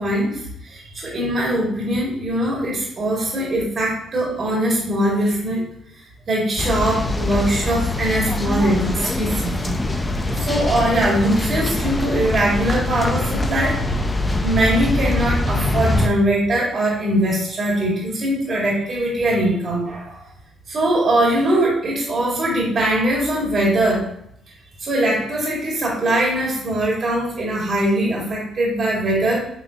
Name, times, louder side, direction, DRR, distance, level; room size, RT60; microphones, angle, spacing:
voice 1, 0.0-5.6 6.3-9.8 10.4-13.8 14.4-20.3 20.7-24.1 24.8-29.5, right 1 dB, 50° right, -3 dB, 2.6 m, -21 dB
sound 1, 6.6-16.1, left 2 dB, 15° left, 0.8 m, -23 dB
8.6 x 4.1 x 3.0 m, 0.74 s
cardioid pair, 90°, 0 cm